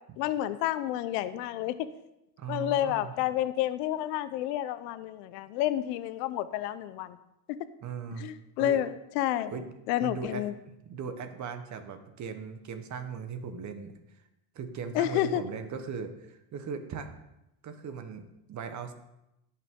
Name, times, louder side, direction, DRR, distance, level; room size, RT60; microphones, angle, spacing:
voice 1, 0.2-1.8 2.5-7.2 8.2-9.5 9.9-10.5 14.9-15.4, left 13 dB, 75° left, 13 dB, 0.8 m, -30 dB
voice 2, 2.4-3.1 7.8-8.3 8.6-8.8 9.5-9.7 10.0-10.4 10.9-13.9 14.5-17.1 17.6-18.9, right 6 dB, 35° right, 8 dB, 1.2 m, -38 dB
17.0 x 5.8 x 3.7 m, 0.89 s
supercardioid pair, 115°, 48 cm